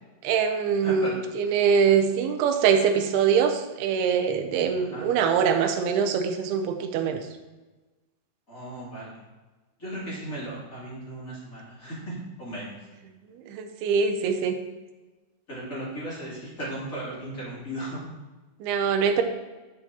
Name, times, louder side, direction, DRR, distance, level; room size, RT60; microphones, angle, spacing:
voice 1, 0.2-7.2 13.5-14.6 18.6-19.2, right 6 dB, 75° right, 5 dB, 2.5 m, -23 dB
voice 2, 0.8-1.2 4.8-5.1 8.5-9.2 9.8-12.7 15.5-18.0, right 1 dB, 20° left, -7 dB, 2.7 m, -36 dB
12.0 x 6.1 x 2.9 m, 1.2 s
omnidirectional pair, 4.9 m